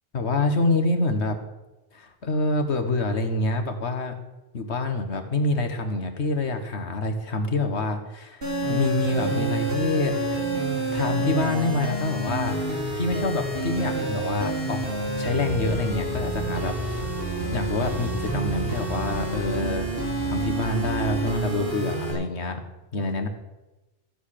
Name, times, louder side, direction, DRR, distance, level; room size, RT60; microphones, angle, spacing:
voice 1, 0.1-1.4 1.9-4.1 4.5-10.4 10.9-12.7 13.0-14.8 15.2-17.0 17.5-19.9 20.3-22.6 22.9-23.3, left 2 dB, 75° left, 6 dB, 1.7 m, -26 dB
sound 1, 8.4-22.1, right 2 dB, 55° right, 4.9 m, -28 dB
14.5 x 8.1 x 6.7 m, 1.0 s
omnidirectional pair, 1.1 m